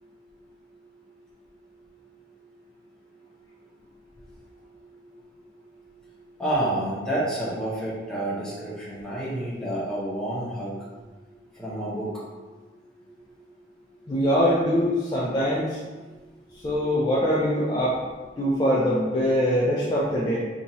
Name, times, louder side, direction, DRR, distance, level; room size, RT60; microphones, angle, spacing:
voice 1, 6.4-10.7 11.5-12.2, right 1 dB, 5° left, -8 dB, 0.8 m, -29 dB
voice 2, 14.1-15.8 16.5-18.0 18.4-20.4, equal, 25° left, -7 dB, 0.4 m, -23 dB
2.8 x 2.5 x 4.0 m, 1.3 s
head